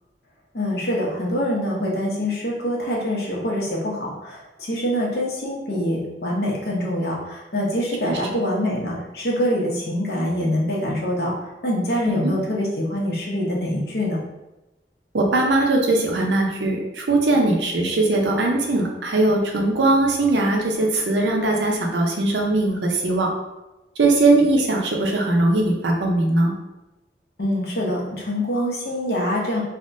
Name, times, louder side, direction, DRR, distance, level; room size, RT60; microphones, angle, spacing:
voice 1, 0.5-11.3 11.6-14.2 27.4-29.6, equal, 65° left, -4 dB, 0.8 m, -24 dB
voice 2, 15.1-23.3 24.0-26.5, right 2 dB, 90° right, 1 dB, 0.6 m, -20 dB
3.3 x 2.1 x 2.6 m, 1.0 s
head